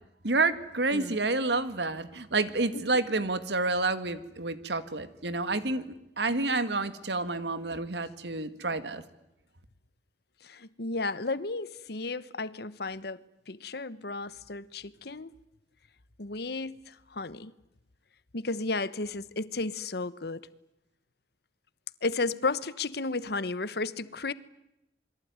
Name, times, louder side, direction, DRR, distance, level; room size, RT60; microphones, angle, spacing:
voice 1, 0.2-5.9 6.2-9.0, right 3 dB, 75° right, 1.8 m, -29 dB
voice 2, 10.4-13.2 13.5-15.3 16.2-17.5 18.3-20.5 22.0-24.3, left 3 dB, 65° left, 1.1 m, -33 dB
27.5 x 22.0 x 9.6 m
head